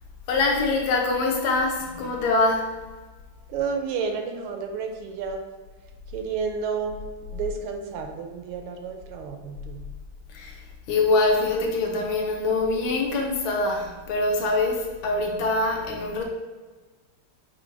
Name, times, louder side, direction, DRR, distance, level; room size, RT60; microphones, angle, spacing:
voice 1, 0.3-2.7 10.3-10.6 10.9-16.2, left 3 dB, 70° left, 0 dB, 1.4 m, -24 dB
voice 2, 3.5-5.5 6.1-7.0 7.3-9.8, right 5 dB, 80° right, 5 dB, 1.4 m, -31 dB
4.6 x 2.2 x 4.5 m, 1.3 s
omnidirectional pair, 2.4 m